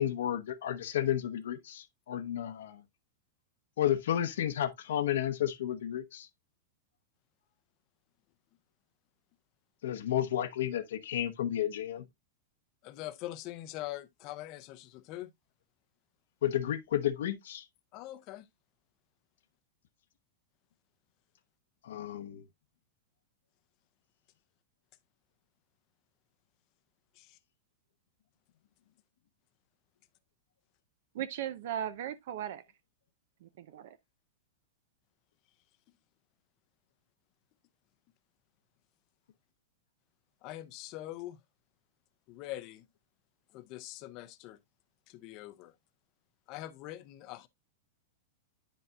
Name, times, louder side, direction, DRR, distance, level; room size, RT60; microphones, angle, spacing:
voice 1, 0.0-2.8 3.8-6.3 9.8-12.1 16.4-17.6 21.8-22.4, left 11 dB, 80° left, 0.9 m, -32 dB
voice 2, 12.8-15.3 17.9-18.4 27.2-27.4 40.4-41.4 42.3-42.8 43.5-44.6 45.1-45.7 46.5-47.5, left 15 dB, 35° left, 0.6 m, -43 dB
voice 3, 31.1-32.6 33.4-34.0, right 10 dB, 60° right, 0.6 m, -37 dB
9.9 x 5.4 x 2.3 m
supercardioid pair, 170°, 0 cm